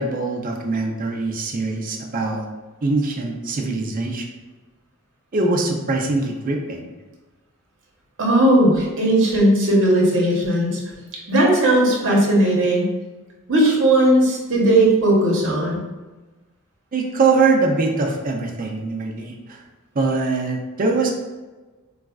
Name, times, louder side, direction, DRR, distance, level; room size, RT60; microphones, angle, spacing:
voice 1, 0.0-2.5 2.8-4.3 5.3-6.9 16.9-19.6 19.9-21.1, right 3 dB, 40° right, 0 dB, 0.5 m, -22 dB
voice 2, 8.2-10.8 11.3-12.9 13.5-15.8, right 1 dB, 60° right, -3 dB, 0.9 m, -17 dB
4.0 x 2.4 x 2.3 m, 1.2 s
head